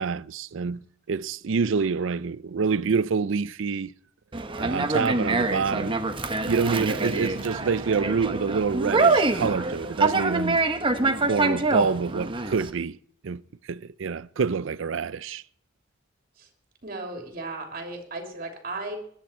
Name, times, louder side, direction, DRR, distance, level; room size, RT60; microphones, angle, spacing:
voice 1, 0.0-3.9 4.5-5.9 6.5-10.6 11.3-13.0 13.2-13.4 13.7-15.4, right 5 dB, 65° right, 0.5 m, -27 dB
Conversation, 4.3-12.7, right 3 dB, 25° right, 0.9 m, -25 dB
voice 2, 16.8-19.0, right 2 dB, 45° right, 3.1 m, -35 dB
20.5 x 10.5 x 4.4 m
head